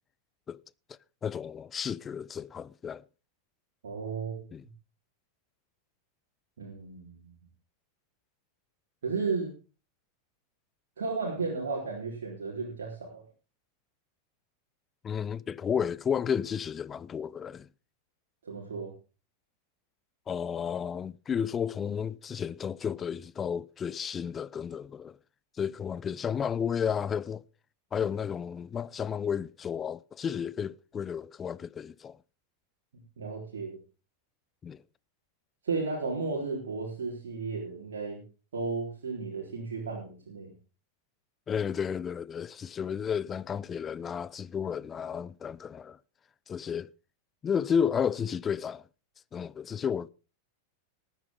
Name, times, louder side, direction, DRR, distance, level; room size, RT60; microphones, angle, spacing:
voice 1, 1.2-3.0 4.5-4.6 15.0-17.7 20.3-25.2 25.6-27.4 27.9-32.2 34.6-34.8 41.5-46.0 46.5-46.9 47.4-48.9 49.3-50.1, left 7 dB, 20° left, 0.5 m, -32 dB
voice 2, 3.8-4.3 6.6-7.3 9.0-9.5 11.0-13.2 18.4-18.9 33.2-33.8 35.6-38.2 38.5-40.5, right 4 dB, 65° right, 3.9 m, -34 dB
19.0 x 10.0 x 3.7 m
figure-of-eight pair, 90°, 0 cm